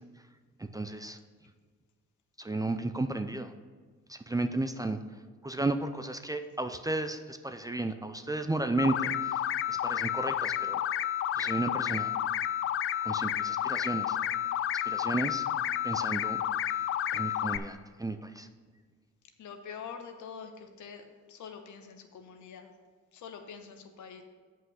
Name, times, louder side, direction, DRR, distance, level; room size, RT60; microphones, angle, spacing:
voice 1, 0.6-1.2 2.4-3.5 4.1-5.0 5.4-10.8 11.4-12.1 13.0-14.2 14.9-15.5 15.8-16.4 17.1-18.5, right 2 dB, 10° right, 9 dB, 0.5 m, -33 dB
sound 1, 8.8-17.6, left 11 dB, 45° left, 0.4 m, -31 dB
voice 2, 19.4-21.0 21.3-22.7 23.1-24.2, left 6 dB, 75° left, 6 dB, 1.1 m, -45 dB
7.7 x 5.7 x 6.4 m, 1.5 s
cardioid pair, 90°, 30 cm